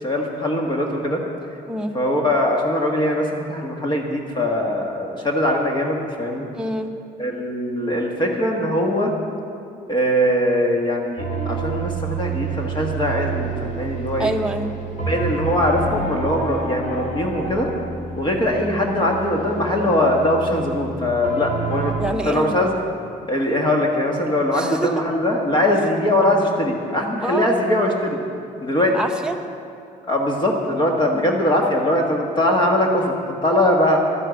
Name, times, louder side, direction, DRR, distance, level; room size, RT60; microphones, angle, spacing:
voice 1, 0.0-1.2 1.9-6.5 7.2-9.1 9.9-14.3 15.1-17.7 18.2-22.7 23.3-28.2 28.6-29.0 30.1-34.0, left 1 dB, 25° left, 0 dB, 1.5 m, -21 dB
voice 2, 6.5-6.9 14.2-14.7 22.0-22.5 24.5-25.0 27.2-27.5 28.9-29.4 31.1-31.2, right 1 dB, 5° right, 3 dB, 1.0 m, -25 dB
sound 1, 11.2-21.9, right 4 dB, 45° left, 4.3 m, -29 dB
11.5 x 10.5 x 8.1 m, 2.6 s
cardioid pair, 110°, 17 cm